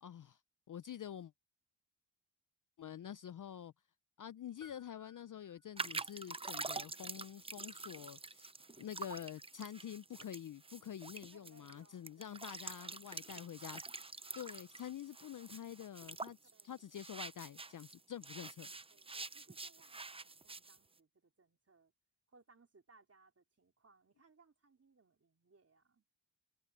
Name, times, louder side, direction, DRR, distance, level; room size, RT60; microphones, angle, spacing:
voice 1, 0.0-0.4 0.7-1.3 2.8-3.7 4.2-8.5 8.8-13.8 14.1-18.7, left 10 dB, 45° left, 0.5 m, -48 dB
sound 1, 4.6-6.1, left 3 dB, 10° left, 2.3 m, -64 dB
sound 2, 5.8-18.0 18.2-20.8, right 3 dB, 10° right, 0.5 m, -47 dB
voice 2, 11.3-12.4 16.5-17.0 18.9-21.9 22.3-26.1, right 4 dB, 30° right, 3.5 m, -68 dB
cardioid pair, 75°, 47 cm